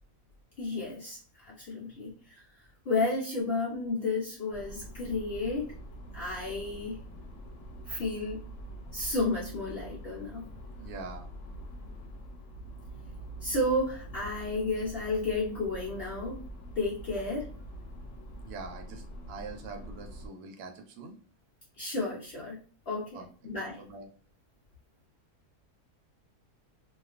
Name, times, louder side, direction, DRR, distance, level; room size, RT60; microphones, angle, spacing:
voice 1, 0.6-2.4 2.9-5.7 6.1-7.0 7.9-8.4 8.9-10.4 13.4-16.4 16.8-17.5 21.8-22.6 22.9-23.2 23.4-23.8, left 2 dB, 90° left, -4 dB, 0.5 m, -32 dB
sound 1, 4.5-20.3, equal, 70° left, 0.8 m, -45 dB
voice 2, 10.8-11.3 18.4-21.2 23.1-23.3 23.8-24.1, right 4 dB, 80° right, 4 dB, 1.1 m, -43 dB
2.3 x 2.3 x 2.3 m, 0.43 s
omnidirectional pair, 1.6 m